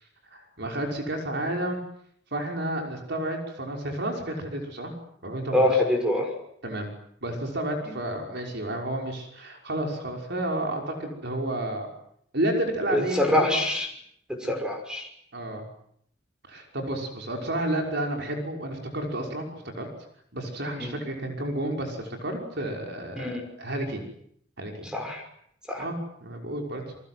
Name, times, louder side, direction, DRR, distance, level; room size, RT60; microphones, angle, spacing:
voice 1, 0.3-1.8 2.3-4.9 5.2-5.8 6.6-6.9 7.2-11.9 12.3-13.6 15.3-15.6 16.5-19.9 20.3-24.0 24.6-24.9 25.8-26.8, right 1 dB, 60° right, 2 dB, 5.9 m, -31 dB
voice 2, 5.5-6.3 12.9-13.9 14.3-15.1 20.8-20.9 23.2-23.4 24.9-25.2 25.7-25.9, left 1 dB, 5° right, 3 dB, 5.8 m, -25 dB
29.0 x 24.5 x 8.0 m, 0.70 s
head